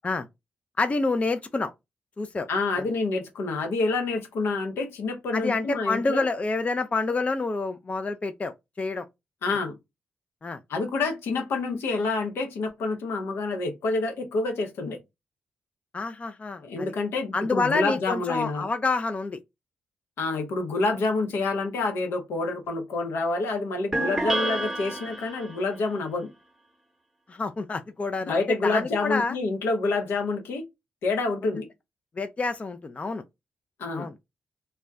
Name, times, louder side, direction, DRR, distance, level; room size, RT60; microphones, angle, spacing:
voice 1, 0.8-1.7 2.2-2.5 5.3-9.1 10.4-10.6 15.9-16.9 17.3-19.4 27.3-29.4 32.2-33.2 33.9-34.1, left 3 dB, 35° left, 0.4 m, -28 dB
voice 2, 2.5-6.3 9.4-9.8 10.7-15.0 16.6-18.7 20.2-26.3 28.2-30.6 31.0-31.7 33.8-34.1, left 3 dB, 80° left, 0.7 m, -27 dB
sound 1, 23.9-25.7, right 1 dB, 5° right, 0.8 m, -29 dB
2.2 x 2.1 x 3.6 m
supercardioid pair, 50°, 4 cm